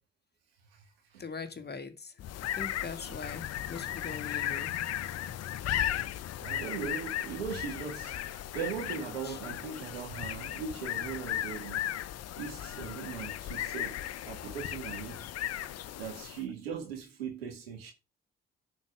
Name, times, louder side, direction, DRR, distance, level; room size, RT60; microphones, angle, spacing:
voice 1, 1.2-4.8 9.2-9.4, left 4 dB, 35° left, 1.9 m, -42 dB
sound 1, 2.2-16.5, left 12 dB, 60° left, 0.7 m, -36 dB
voice 2, 6.4-11.9 12.4-15.2 16.0-17.9, right 6 dB, 85° right, 2.2 m, -39 dB
9.1 x 4.6 x 6.2 m
hypercardioid pair, 40°, 29 cm